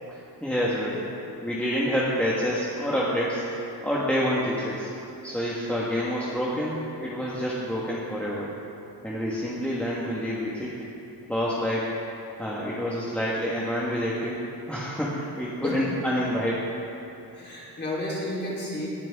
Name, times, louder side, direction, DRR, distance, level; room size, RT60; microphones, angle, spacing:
voice 1, 0.1-1.0 1.4-3.4 3.8-4.9 5.2-8.5 9.0-10.9 11.3-12.0 12.4-14.4 14.7-16.6, equal, 5° left, -7 dB, 1.4 m, -28 dB
voice 2, 15.6-15.9 17.3-18.9, left 1 dB, 25° left, -6 dB, 3.5 m, -32 dB
19.0 x 10.5 x 3.6 m, 2.8 s
wide cardioid pair, 140°, 41 cm